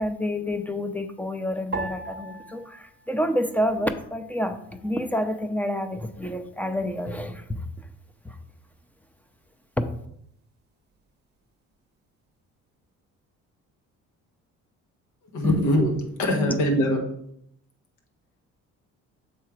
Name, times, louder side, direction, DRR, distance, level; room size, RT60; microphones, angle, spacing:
voice 1, 0.0-7.6 8.2-8.4 9.8-9.9 15.4-15.6 16.3-16.5, left 1 dB, 5° left, 8 dB, 0.6 m, -28 dB
sound 1, 1.7-4.2 4.5-5.4 6.0-6.4, right 2 dB, 35° right, 0.8 m, -39 dB
voice 2, 15.3-17.0, equal, 90° left, 2 dB, 1.4 m, -22 dB
6.7 x 3.7 x 4.5 m, 0.72 s
cardioid pair, 95°, 31 cm